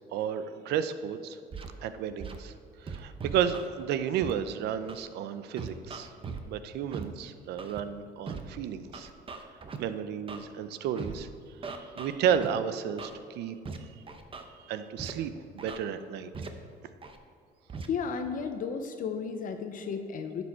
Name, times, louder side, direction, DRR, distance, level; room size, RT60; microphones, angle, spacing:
voice 1, 0.1-1.4 1.8-2.5 2.8-6.1 6.5-9.1 9.8-11.3 11.6-13.6 14.6-16.3, right 8 dB, 80° right, 12 dB, 0.6 m, -32 dB
Scratching (performance technique), 1.5-1.7 2.2-2.4 2.9-3.7 4.2-4.3 4.9-5.0 5.6-6.4 6.9-7.0 7.6-7.8 8.3-8.4 8.9-9.8 10.3-10.4 11.0-11.1 11.6-12.5 13.0-13.1 13.6-13.8 14.1-14.4 15.0-15.1 15.6-15.8 16.3-16.5 17.0-17.2 17.7-17.9, right 5 dB, 30° right, 0.9 m, -39 dB
voice 2, 17.9-20.4, left 6 dB, 50° left, 6 dB, 0.8 m, -33 dB
11.0 x 7.0 x 4.3 m, 2.4 s
cardioid pair, 110°, 17 cm